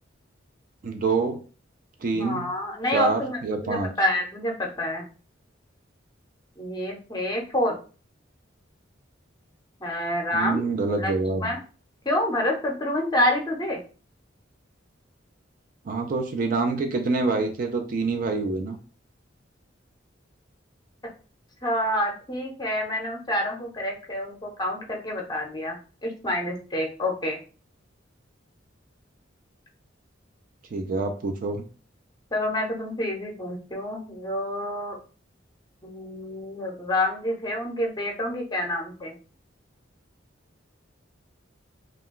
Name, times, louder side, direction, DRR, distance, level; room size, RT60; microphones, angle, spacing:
voice 1, 0.8-1.4 2.0-2.5 2.9-3.9 10.3-11.5 15.9-18.8 30.7-31.6, right 3 dB, 45° right, 4 dB, 0.4 m, -26 dB
voice 2, 2.1-5.1 6.6-7.8 9.8-10.7 11.0-11.1 11.4-11.6 12.0-13.8 21.6-27.4 32.3-35.0 35.8-39.2, left 1 dB, 20° left, 1 dB, 0.6 m, -28 dB
2.4 x 2.2 x 3.6 m, 0.37 s
head